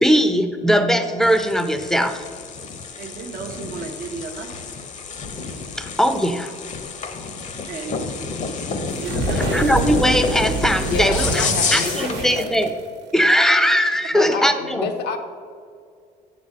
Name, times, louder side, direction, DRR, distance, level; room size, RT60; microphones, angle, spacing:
voice 1, 0.0-2.2 5.8-6.5 9.3-12.7 13.1-14.9, equal, ahead, 9 dB, 0.5 m, -19 dB
sound 1, 1.2-12.2, left 4 dB, 45° left, 0.8 m, -29 dB
voice 2, 3.0-4.6 7.7-8.1 9.0-9.5, right 4 dB, 55° right, 2 dB, 0.7 m, -33 dB
sound 2, 8.9-13.1, right 4 dB, 85° right, 1.1 m, -27 dB
voice 3, 10.8-12.5 14.1-15.2, left 6 dB, 75° left, 6 dB, 0.9 m, -28 dB
7.7 x 4.2 x 6.3 m, 2.2 s
cardioid pair, 110°, 17 cm